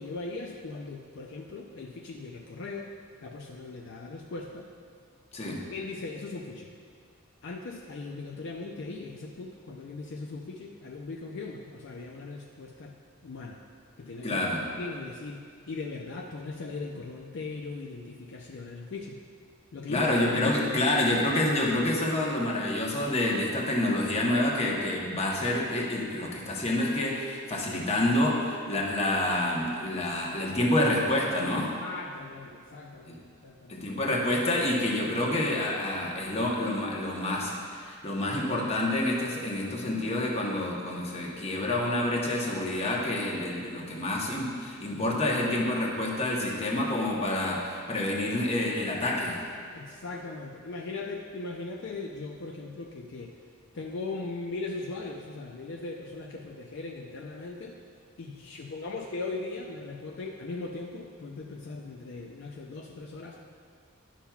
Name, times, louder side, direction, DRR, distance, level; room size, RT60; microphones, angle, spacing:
voice 1, 0.0-2.9 3.2-4.7 5.4-6.7 7.4-13.6 14.0-14.4 14.8-19.2 19.7-20.1 31.4-33.9 49.7-53.4 53.7-57.8 58.2-63.4, left 3 dB, 60° left, 0 dB, 0.4 m, -39 dB
voice 2, 14.2-14.6 19.9-31.7 33.1-33.2 33.7-49.5, left 1 dB, 30° left, -2 dB, 1.0 m, -28 dB
11.5 x 5.6 x 2.3 m, 2.2 s
head